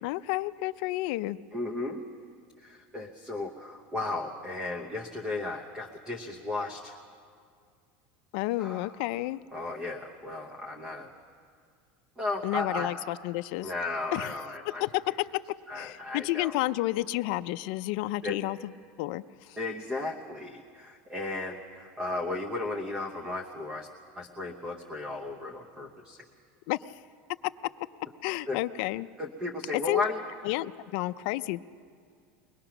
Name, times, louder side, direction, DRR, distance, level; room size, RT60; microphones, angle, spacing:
voice 1, 0.0-1.4 8.3-9.4 12.4-13.7 14.1-14.3 14.8-15.3 15.7-18.7 19.0-19.6 26.7-26.8 28.2-29.1 29.7-30.0 30.4-31.6, left 18 dB, 55° left, 12 dB, 0.4 m, -31 dB
voice 2, 1.5-2.0 2.6-7.0 8.6-8.9 9.5-11.1 12.2-13.0 13.6-14.8 15.7-16.5 18.2-18.4 19.6-23.9 24.2-26.2 28.5-28.6 29.2-30.2, left 2 dB, 10° right, 4 dB, 0.9 m, -35 dB
22.0 x 20.5 x 5.9 m, 2.2 s
cardioid pair, 180°, 6 cm